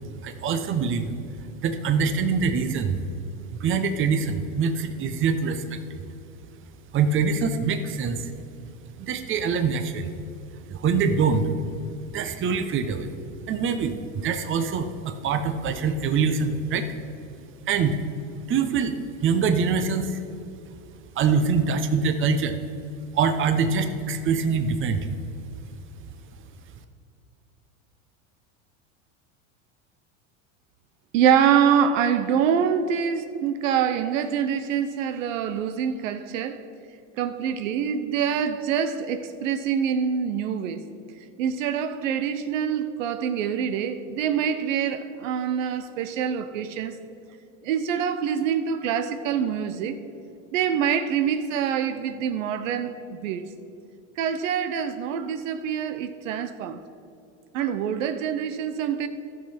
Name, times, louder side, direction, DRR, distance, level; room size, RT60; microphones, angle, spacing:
voice 1, 0.2-1.1 1.6-3.0 3.5-6.0 6.9-8.3 9.0-10.1 10.7-11.5 12.1-13.1 13.5-16.8 17.7-18.0 18.5-20.2 21.2-22.6 23.1-25.1, right 5 dB, 30° right, 0.9 m, -24 dB
voice 2, 31.1-36.6 37.2-40.8 41.4-46.9 47.6-50.0 50.5-53.4 54.2-56.8 57.5-59.1, right 8 dB, 75° right, 0.8 m, -25 dB
14.5 x 6.3 x 4.3 m
supercardioid pair, 110°, 39 cm